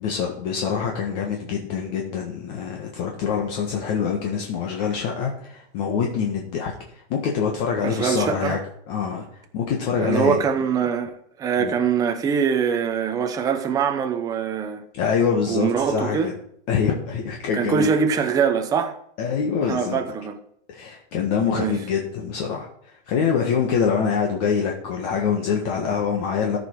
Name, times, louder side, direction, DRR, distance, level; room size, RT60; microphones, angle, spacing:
voice 1, 0.0-8.6 8.9-9.2 9.5-10.4 11.6-11.7 14.9-16.3 16.7-17.9 19.2-20.0 20.7-26.6, left 6 dB, 40° left, 1.5 m, -25 dB
voice 2, 7.8-8.6 10.0-14.8 15.5-16.3 17.5-19.0 19.7-20.4 21.5-21.7, right 7 dB, 10° right, 0.7 m, -23 dB
14.0 x 5.5 x 4.6 m
supercardioid pair, 165°, 31 cm